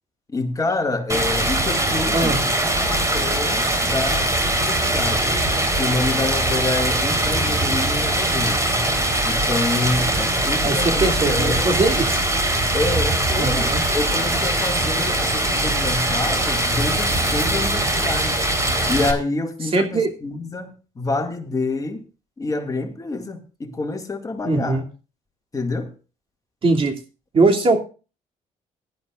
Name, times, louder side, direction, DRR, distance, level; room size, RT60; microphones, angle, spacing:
voice 1, 0.3-2.5 2.9-5.3 5.8-8.6 9.2-11.7 12.7-18.4 18.9-20.7 21.0-22.0 22.4-24.8 25.5-25.9, left 2 dB, 25° left, 2.0 m, -27 dB
Stream, 1.1-19.1, right 1 dB, 20° right, 3.5 m, -21 dB
voice 2, 10.6-12.2 13.4-13.8 19.6-20.1 24.4-24.9 26.6-27.0 27.3-27.8, right 3 dB, 40° right, 2.7 m, -20 dB
18.0 x 12.0 x 2.4 m
cardioid pair, 95°, 14 cm